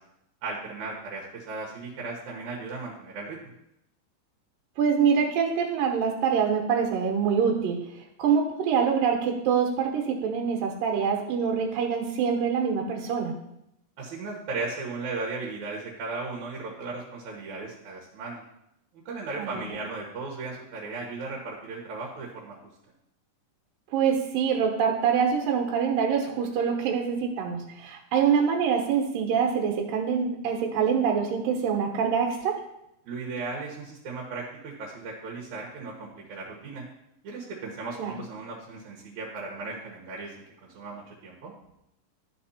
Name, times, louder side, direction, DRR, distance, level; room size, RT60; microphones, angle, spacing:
voice 1, 0.4-3.5 14.0-18.4 18.9-22.6 33.1-36.9 37.2-41.5, right 3 dB, 65° right, -2 dB, 2.4 m, -36 dB
voice 2, 4.8-13.3 19.4-19.6 23.9-32.6 38.0-38.1, right 6 dB, 85° right, 0 dB, 2.8 m, -25 dB
12.0 x 4.3 x 4.2 m, 0.81 s
omnidirectional pair, 3.9 m